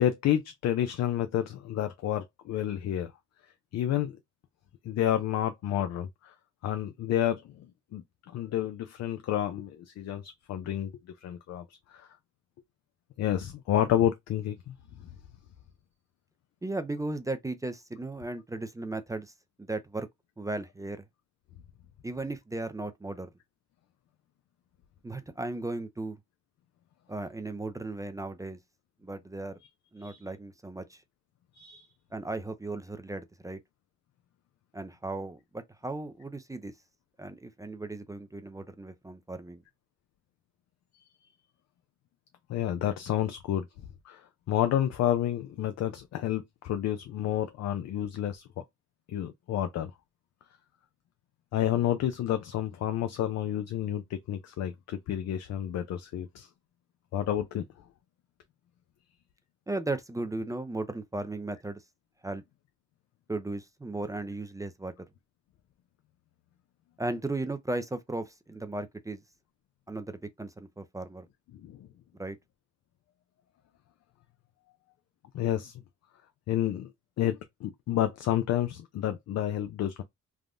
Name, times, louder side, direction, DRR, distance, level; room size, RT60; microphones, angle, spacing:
voice 1, 0.0-3.1 3.7-4.2 4.8-6.3 6.6-7.7 7.9-10.9 11.2-12.1 13.2-14.7 30.0-30.2 31.6-31.9 42.5-43.7 44.1-48.6 49.1-49.9 51.5-56.5 57.1-57.7 71.6-71.9 75.3-75.7 76.5-76.9 77.2-80.0, left 11 dB, 60° left, 0.5 m, -30 dB
voice 2, 16.6-19.3 19.6-20.1 20.4-21.0 22.0-23.3 25.0-26.2 27.1-28.6 29.0-29.6 29.9-31.0 32.1-33.6 34.7-36.7 37.2-39.6 59.7-61.8 62.2-62.4 63.3-64.9 67.0-69.2 69.9-71.3 72.2-72.4, right 2 dB, 10° right, 0.4 m, -36 dB
3.5 x 2.1 x 2.4 m
cardioid pair, 90°, 30 cm